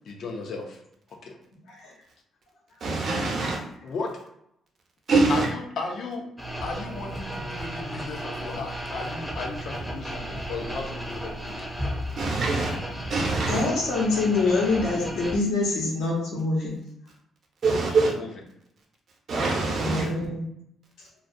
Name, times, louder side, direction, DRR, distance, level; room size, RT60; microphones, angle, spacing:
voice 1, 0.1-0.8 1.2-1.3 3.8-4.1 5.3-6.3 6.6-11.6 17.9-18.3 20.0-20.1, left 3 dB, 65° left, 0.5 m, -35 dB
voice 2, 2.8-3.6 5.1-5.5 12.2-12.7 13.1-13.6 17.6-18.1 19.3-20.1, right 3 dB, 55° right, 0.7 m, -23 dB
sound 1, 6.4-15.4, right 1 dB, 5° left, 0.6 m, -34 dB
voice 3, 13.5-16.8 19.8-20.4, left 3 dB, 85° left, 0.8 m, -25 dB
2.3 x 2.2 x 2.6 m
cardioid pair, 90°, 0 cm